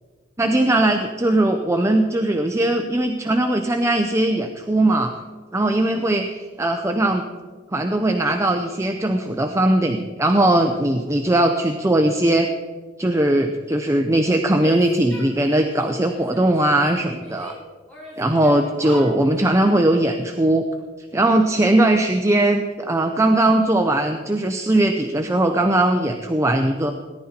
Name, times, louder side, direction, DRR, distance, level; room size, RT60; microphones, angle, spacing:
voice 1, 0.4-5.2 5.5-7.2 7.7-12.5 13.0-17.5 18.2-20.6 21.1-26.9, right 1 dB, 15° right, 4 dB, 0.7 m, -19 dB
Female speech woman speaking / Yell, 14.6-15.8 16.1-17.6 17.9-19.7, left 1 dB, 5° left, 4.9 m, -39 dB
18.0 x 11.0 x 4.4 m, 1.4 s
head